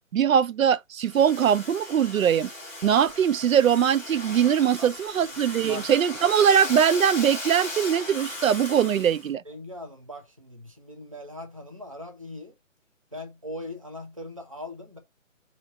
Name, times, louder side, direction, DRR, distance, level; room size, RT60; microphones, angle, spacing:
voice 1, 0.1-2.5 2.8-9.4, right 8 dB, 90° right, 0.5 m, -21 dB
Domestic sounds home sounds, 1.0-9.3, left 2 dB, 10° left, 0.8 m, -37 dB
voice 2, 9.4-12.5 13.1-15.0, left 1 dB, 25° right, 0.4 m, -40 dB
4.2 x 2.8 x 4.0 m
hypercardioid pair, 165°, 40 cm